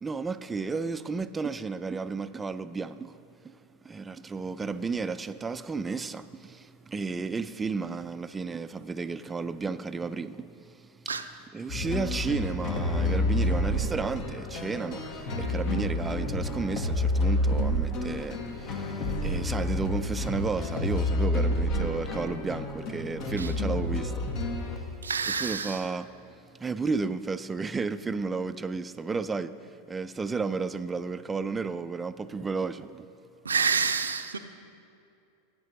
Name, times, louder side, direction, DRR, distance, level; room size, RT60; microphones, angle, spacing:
voice 1, 0.0-3.1 3.4-3.5 3.8-11.2 11.5-24.2 24.6-24.9 25.3-26.1 26.6-29.5 29.9-33.1, right 4 dB, 15° right, 0.4 m, -33 dB
sound 1, 11.7-24.8, left 1 dB, 45° left, 1.1 m, -29 dB
voice 2, 25.0-25.8 33.5-34.4, right 6 dB, 80° right, 0.5 m, -28 dB
16.0 x 9.6 x 2.7 m
figure-of-eight pair, 90°, 0 cm